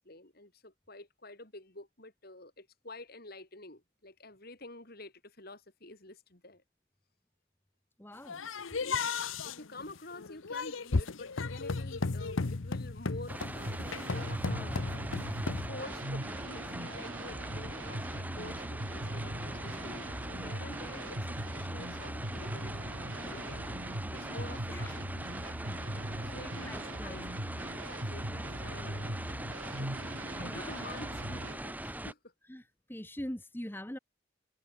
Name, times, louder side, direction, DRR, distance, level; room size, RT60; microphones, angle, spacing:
voice 1, 0.0-6.6 8.7-14.9 15.7-25.2 26.2-27.3 27.7-32.3, left 2 dB, 50° left, 4.6 m, -49 dB
voice 2, 8.0-8.4 24.7-25.0 25.4-25.8 26.6-27.4 30.4-30.9 32.5-32.6 32.9-34.0, equal, 10° left, 1.4 m, -43 dB
sound 1, 8.3-15.7, left 4 dB, 80° left, 0.9 m, -35 dB
sound 2, 13.3-32.1, right 1 dB, 10° right, 3.0 m, -41 dB
sound 3, 13.6-31.5, right 1 dB, 90° right, 4.6 m, -41 dB
head